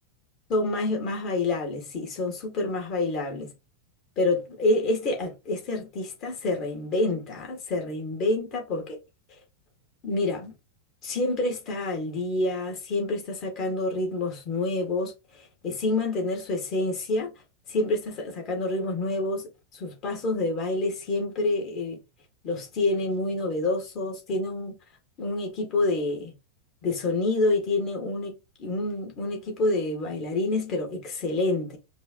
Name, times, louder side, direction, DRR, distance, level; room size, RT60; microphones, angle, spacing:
voice 1, 0.5-3.5 4.2-9.0 10.0-10.5 11.0-15.1 15.4-17.3 17.7-22.0 22.4-24.7 25.2-26.3 26.8-31.8, left 2 dB, 35° left, 1.9 m, -28 dB
5.2 x 2.6 x 3.0 m
figure-of-eight pair, 90°, 0 cm